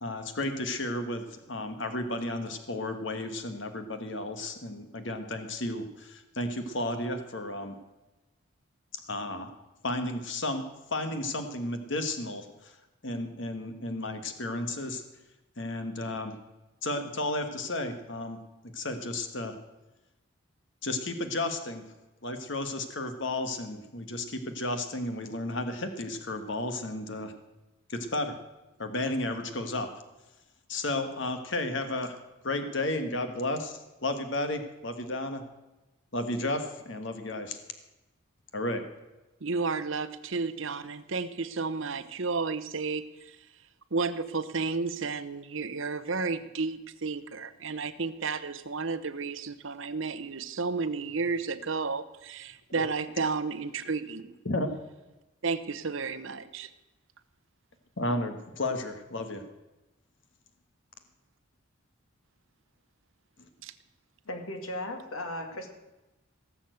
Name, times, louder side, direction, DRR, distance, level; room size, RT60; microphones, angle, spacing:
voice 1, 0.0-7.8 9.1-9.5 9.8-10.6 10.9-12.8 13.0-15.0 15.6-16.3 16.8-18.4 18.6-19.5 20.8-21.8 22.2-27.3 27.9-28.4 28.8-29.9 30.7-32.1 32.4-35.4 36.1-37.6 38.5-38.8 54.4-54.7 58.0-59.4, left 2 dB, 55° left, 7 dB, 1.4 m, -33 dB
voice 2, 39.4-43.4 43.9-54.4 55.4-56.7 63.6-63.7, right 4 dB, 65° right, 12 dB, 0.9 m, -32 dB
voice 3, 64.3-65.7, left 1 dB, 80° left, 4 dB, 2.4 m, -36 dB
18.0 x 7.2 x 7.9 m, 1.0 s
head